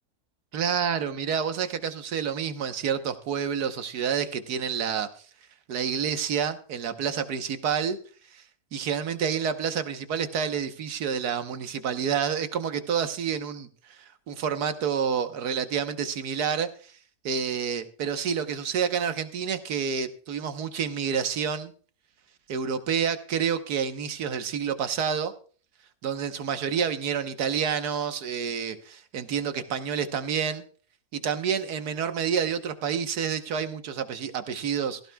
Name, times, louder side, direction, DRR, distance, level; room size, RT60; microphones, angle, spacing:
voice 1, 0.5-5.1 5.7-8.0 8.3-8.4 8.7-13.7 14.0-16.7 17.2-21.7 22.5-25.3 26.0-30.6 31.1-35.0, right 7 dB, 90° right, 9 dB, 1.6 m, -28 dB
17.0 x 15.0 x 2.3 m, 0.41 s
omnidirectional pair, 1.6 m